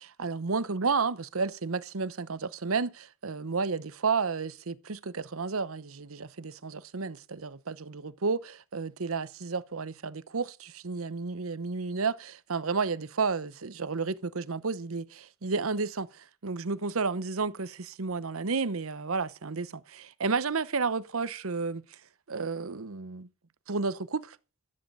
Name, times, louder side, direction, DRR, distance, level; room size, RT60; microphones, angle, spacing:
voice 1, 0.0-21.8 22.3-23.3 23.7-24.4, right 4 dB, 90° right, 0.9 m, -32 dB
13.0 x 10.5 x 5.5 m
head